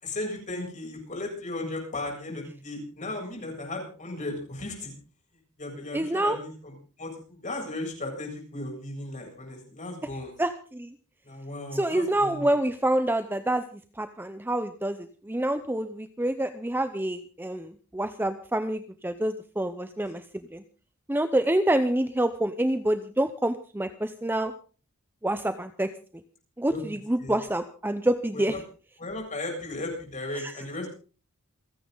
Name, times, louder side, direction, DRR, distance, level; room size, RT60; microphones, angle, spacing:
voice 1, 0.0-4.9 5.6-10.4 11.2-12.5 26.7-26.8 27.2-27.4 28.3-28.5 29.0-30.9, left 2 dB, 35° left, 0 dB, 7.7 m, -36 dB
voice 2, 5.9-6.4 10.4-10.9 11.7-13.6 14.0-20.2 20.5-20.6 21.1-24.5 25.2-25.9 26.6-28.6 30.4-30.5, right 1 dB, 10° right, 9 dB, 0.7 m, -27 dB
29.0 x 10.0 x 3.9 m, 0.39 s
head